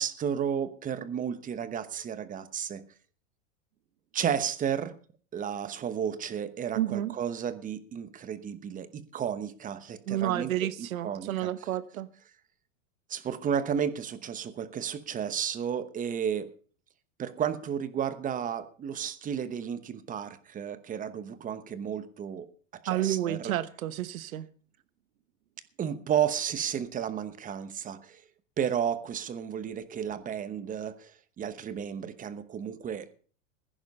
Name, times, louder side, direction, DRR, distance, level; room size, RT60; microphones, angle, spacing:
voice 1, 0.0-2.8 4.1-4.9 5.3-11.5 13.1-16.5 17.2-22.5 22.8-23.5 25.8-28.2 28.6-31.1 31.4-33.1, right 8 dB, 20° right, 1.0 m, -32 dB
voice 2, 6.7-7.1 10.1-12.1 22.9-24.5, right 13 dB, 85° right, 1.2 m, -30 dB
15.5 x 10.5 x 5.4 m
supercardioid pair, 140°, 40 cm